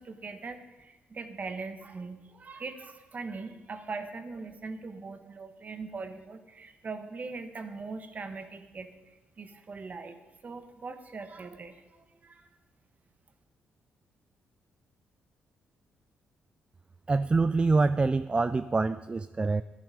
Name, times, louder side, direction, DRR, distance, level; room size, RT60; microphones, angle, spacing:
voice 1, 0.0-10.2 10.4-12.5, right 4 dB, 45° right, 7 dB, 1.4 m, -41 dB
voice 2, 17.1-19.6, right 3 dB, 25° right, 13 dB, 0.4 m, -25 dB
12.5 x 10.5 x 5.1 m, 1.1 s
supercardioid pair, 60°, 4 cm